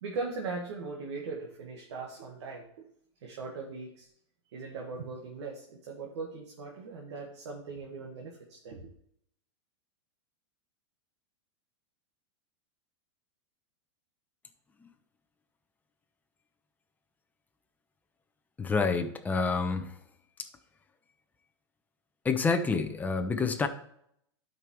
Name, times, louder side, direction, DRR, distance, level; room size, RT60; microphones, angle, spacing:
voice 1, 0.0-2.8 3.2-4.1 4.5-8.9, right 4 dB, 75° right, -1 dB, 1.6 m, -39 dB
voice 2, 18.6-20.0 22.2-23.7, left 4 dB, 10° left, 6 dB, 0.8 m, -28 dB
12.0 x 5.3 x 3.1 m, 0.71 s
supercardioid pair, 135°, 15 cm